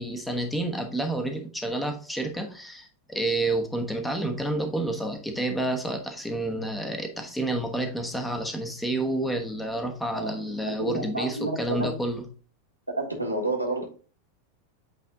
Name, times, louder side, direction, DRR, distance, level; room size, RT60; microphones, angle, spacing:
voice 1, 0.0-12.2, right 1 dB, 5° left, 1.2 m, -29 dB
voice 2, 10.1-11.9 13.0-13.8, right 2 dB, 90° right, 1.5 m, -30 dB
8.4 x 3.4 x 3.7 m
figure-of-eight pair, 90°, 0 cm